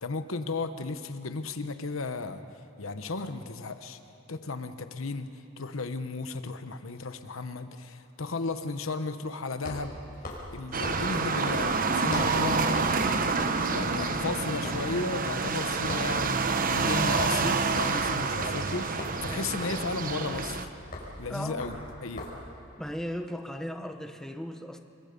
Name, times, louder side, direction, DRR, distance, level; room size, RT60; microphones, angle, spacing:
voice 1, 0.0-2.4 2.8-4.0 4.3-10.0 10.5-13.0 13.4-16.4 16.7-20.7 21.2-21.7 22.0-22.2, left 3 dB, 80° left, 10 dB, 1.0 m, -34 dB
sound 1, 6.2-6.3 9.5-12.5 12.7-13.1 13.3-15.6 15.9-16.2 16.6-16.8 17.1-22.5, left 1 dB, 45° left, 5.2 m, -41 dB
sound 2, 10.7-20.6, right 4 dB, 45° right, 1.0 m, -28 dB
voice 2, 21.3-21.6 22.3-22.5 22.8-24.8, equal, ahead, 4 dB, 1.0 m, -37 dB
28.0 x 22.0 x 5.3 m, 2.6 s
head